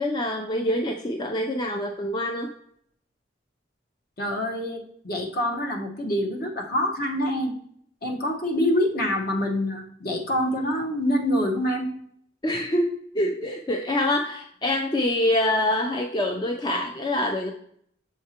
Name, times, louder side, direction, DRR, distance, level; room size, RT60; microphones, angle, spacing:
voice 1, 0.0-2.5 12.4-17.5, left 1 dB, 25° left, 3 dB, 0.5 m, -25 dB
voice 2, 4.2-7.5 8.0-11.9, left 1 dB, 50° left, 1 dB, 1.2 m, -26 dB
7.2 x 4.5 x 2.9 m, 0.68 s
head